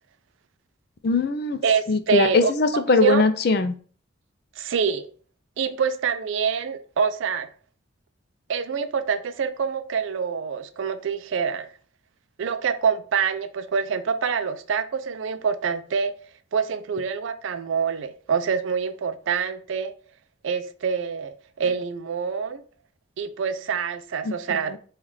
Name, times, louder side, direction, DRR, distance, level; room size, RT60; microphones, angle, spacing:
voice 1, 1.0-1.6 1.9-3.7 24.2-24.3 24.7-24.8, left 3 dB, 50° left, 0.4 m, -21 dB
voice 2, 1.6-2.5 3.0-3.2 4.6-5.1 5.6-7.5 8.5-11.7 12.4-16.1 16.5-19.9 20.4-22.6 23.2-24.8, right 6 dB, 70° right, 0.4 m, -26 dB
5.5 x 2.4 x 3.2 m
head